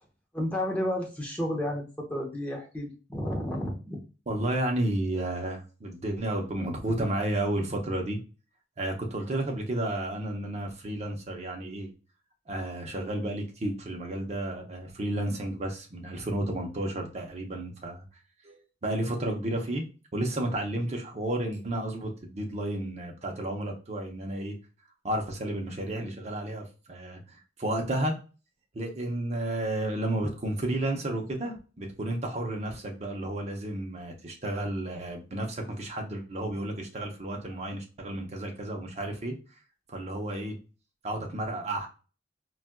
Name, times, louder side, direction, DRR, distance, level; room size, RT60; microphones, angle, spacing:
voice 1, 0.3-4.0, left 1 dB, 10° left, -2 dB, 0.8 m, -32 dB
voice 2, 4.3-8.2 8.8-11.9 12.5-18.0 18.4-19.8 20.1-24.5 25.0-28.1 28.7-39.3 39.9-40.5 41.0-41.9, right 1 dB, 35° right, 2 dB, 0.7 m, -32 dB
4.1 x 2.3 x 2.2 m, 0.34 s
head